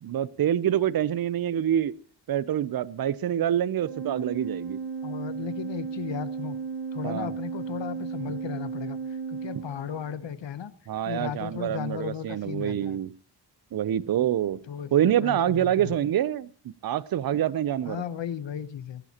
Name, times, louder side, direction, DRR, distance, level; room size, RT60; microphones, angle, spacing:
voice 1, 0.0-1.9 2.3-4.8 7.0-7.3 10.9-13.1 13.7-14.6 14.9-18.0, right 10 dB, 55° right, 19 dB, 0.5 m, -26 dB
Organ, 3.8-10.3, right 5 dB, 90° right, 1.1 m, -35 dB
voice 2, 5.0-6.6 6.9-9.0 9.3-10.7 11.0-13.0 14.7-14.9 15.2-15.9 17.9-19.0, left 8 dB, 85° left, 14 dB, 1.0 m, -35 dB
18.5 x 15.0 x 2.9 m, 0.41 s
wide cardioid pair, 130°, 43 cm